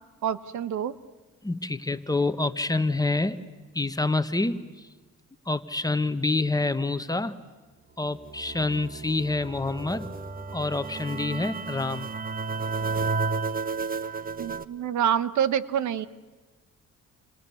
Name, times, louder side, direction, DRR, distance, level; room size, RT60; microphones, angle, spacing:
voice 1, 0.2-0.9 14.4-16.1, right 9 dB, 70° right, 14 dB, 1.2 m, -26 dB
voice 2, 1.4-3.4 3.7-4.6 5.5-7.4 8.0-10.1 10.5-12.1, left 2 dB, 10° left, 10 dB, 1.3 m, -27 dB
sound 1, 8.1-14.6, right 4 dB, 30° right, 1.2 m, -32 dB
29.5 x 26.5 x 7.2 m, 1.3 s
cardioid pair, 90°, 30 cm